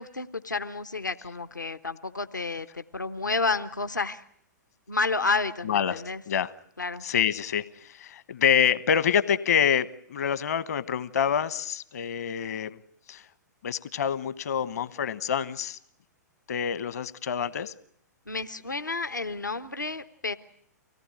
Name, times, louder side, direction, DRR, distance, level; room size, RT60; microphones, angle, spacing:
voice 1, 0.0-4.2 4.9-6.2 6.8-7.0 18.3-20.3, left 3 dB, 85° left, 10 dB, 1.0 m, -30 dB
voice 2, 5.6-6.5 7.0-7.6 8.0-12.8 13.1-13.2 13.6-15.8 16.5-17.7, left 8 dB, 60° left, 15 dB, 1.2 m, -26 dB
25.0 x 18.0 x 9.9 m, 0.67 s
figure-of-eight pair, 110°, 10 cm